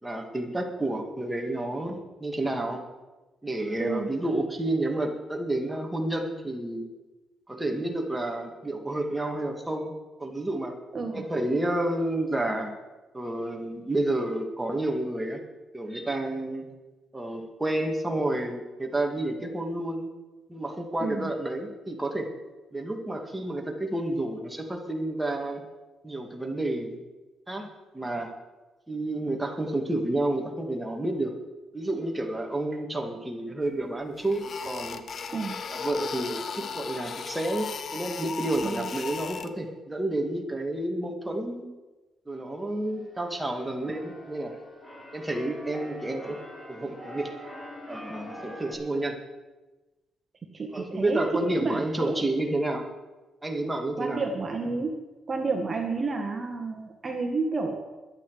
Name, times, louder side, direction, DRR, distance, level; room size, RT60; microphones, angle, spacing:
voice 1, 0.0-2.8 3.4-6.9 7.5-9.9 10.2-10.7 11.1-12.7 13.1-15.4 15.7-16.7 17.1-20.1 20.5-22.3 22.7-25.6 26.0-27.0 27.5-27.7 27.9-28.3 28.9-31.3 31.7-35.0 35.7-41.7 42.3-44.6 45.1-46.4 46.7-47.3 47.9-49.2 50.7-52.8 53.4-54.2, right 1 dB, 10° right, 2 dB, 2.3 m, -30 dB
sound 1, 33.7-33.8 34.2-39.5, left 6 dB, 50° left, 1.0 m, -36 dB
Keyboard (musical), 42.9-48.7, equal, 10° left, 4.8 m, -44 dB
voice 2, 50.5-52.2 54.0-55.0 55.3-57.7, right 3 dB, 35° right, 2 dB, 1.7 m, -30 dB
22.0 x 8.7 x 5.0 m, 1.2 s
cardioid pair, 100°, 0 cm